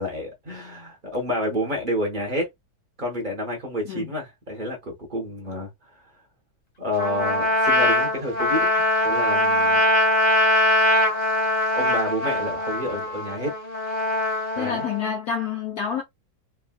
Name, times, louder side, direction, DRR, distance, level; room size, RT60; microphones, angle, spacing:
voice 1, 0.0-2.5 3.0-5.7 6.8-8.7 9.0-9.8 11.7-13.5 14.6-14.9, left 1 dB, 35° right, 0.8 m, -29 dB
Trumpet, 7.0-15.0, left 1 dB, 35° left, 1.0 m, -22 dB
voice 2, 14.6-16.0, left 7 dB, 80° left, 0.8 m, -28 dB
3.5 x 2.3 x 2.2 m
omnidirectional pair, 2.2 m